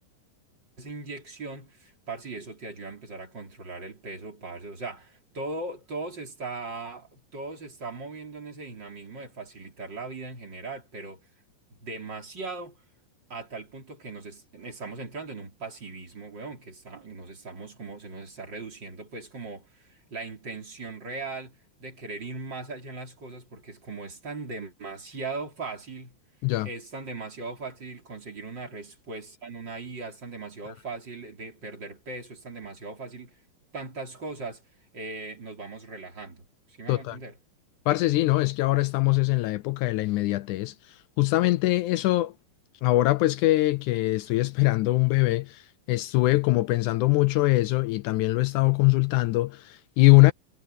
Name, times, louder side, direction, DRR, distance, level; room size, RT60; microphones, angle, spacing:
voice 1, 0.8-11.2 11.7-12.8 13.3-26.2 26.6-33.4 33.7-34.6 34.9-37.4, right 3 dB, 30° right, 4.0 m, -39 dB
voice 2, 37.9-42.3 42.8-50.3, left 19 dB, 85° left, 1.7 m, -22 dB
omnidirectional pair, 4.1 m